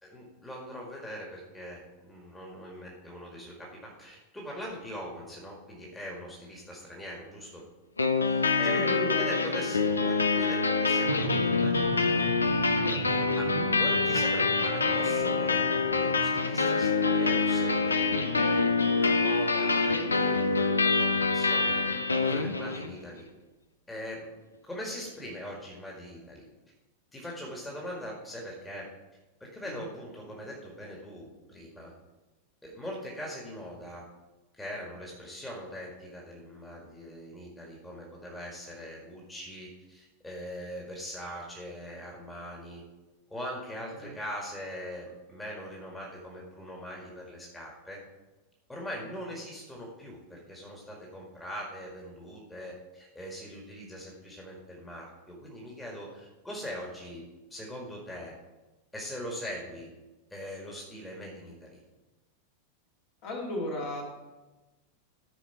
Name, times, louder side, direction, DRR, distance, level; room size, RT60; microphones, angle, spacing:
voice 1, 0.0-7.6 8.2-12.3 13.3-18.1 18.8-21.8 22.2-23.2 23.9-24.3 24.6-26.5 27.1-28.9 29.4-31.9 32.6-34.0 34.6-42.8 43.3-48.0 48.7-57.2 57.5-58.3 58.9-59.9 60.3-61.8, equal, 10° left, -2 dB, 1.9 m, -41 dB
sound 1, 8.0-23.0, left 4 dB, 75° left, 0.6 m, -26 dB
voice 2, 8.7-9.3 13.5-13.7 29.6-29.9 44.0-44.1 63.2-64.0, equal, 45° left, -2 dB, 2.6 m, -35 dB
sound 2, 11.0-16.4, right 12 dB, 50° right, 0.4 m, -39 dB
14.0 x 4.7 x 4.6 m, 1.1 s
figure-of-eight pair, 90°, 0 cm